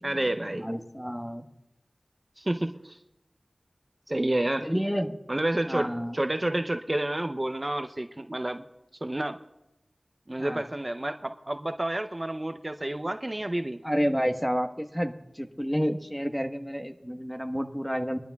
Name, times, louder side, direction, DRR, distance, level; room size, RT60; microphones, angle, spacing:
voice 1, 0.0-0.7 2.4-3.0 4.1-4.7 5.3-8.6 9.0-9.4 10.3-13.8, right 1 dB, 35° right, 7 dB, 0.6 m, -29 dB
voice 2, 0.6-1.4 4.6-5.1 5.6-6.1 10.4-10.6 13.8-18.2, equal, 5° left, 5 dB, 1.2 m, -30 dB
23.0 x 12.0 x 2.3 m, 0.89 s
wide cardioid pair, 45°, 0 cm